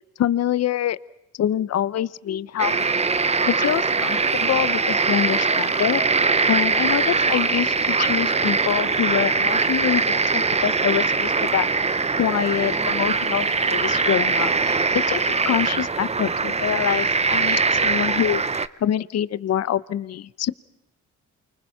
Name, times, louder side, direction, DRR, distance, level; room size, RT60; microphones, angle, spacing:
voice 1, 0.2-1.0 1.3-2.7 3.2-6.0 6.5-11.7 12.2-18.4 18.8-20.5, left 10 dB, 60° left, 17 dB, 0.8 m, -25 dB
sound 1, 2.6-18.7, right 4 dB, 20° right, 0.8 m, -22 dB
29.0 x 24.5 x 5.7 m, 0.90 s
cardioid pair, 90°, 30 cm